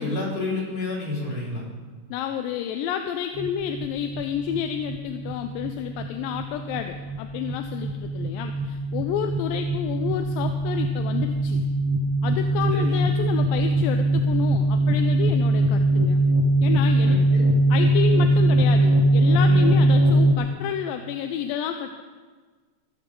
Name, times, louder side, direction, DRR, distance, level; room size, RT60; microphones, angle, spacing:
voice 1, 0.0-1.6 12.7-13.1 17.0-17.5 19.5-19.8, left 2 dB, 60° left, -6 dB, 5.9 m, -29 dB
voice 2, 2.1-11.6 12.2-16.2 16.6-17.2 17.7-22.0, left 9 dB, 85° left, 7 dB, 2.4 m, -30 dB
sound 1, 3.4-20.3, right 1 dB, 55° right, 1.4 m, -21 dB
16.5 x 15.0 x 3.8 m, 1.4 s
omnidirectional pair, 4.0 m